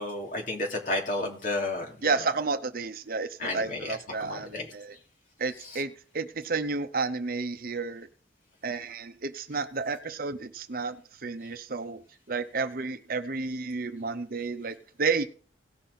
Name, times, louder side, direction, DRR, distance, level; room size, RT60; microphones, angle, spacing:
voice 1, 0.0-2.2 3.4-4.7 5.6-5.8, left 2 dB, 45° left, 0 dB, 3.0 m, -32 dB
voice 2, 2.0-4.9 5.4-8.1 8.6-12.0 12.3-15.3, right 4 dB, 50° right, 10 dB, 0.8 m, -31 dB
17.5 x 6.0 x 4.1 m, 0.42 s
head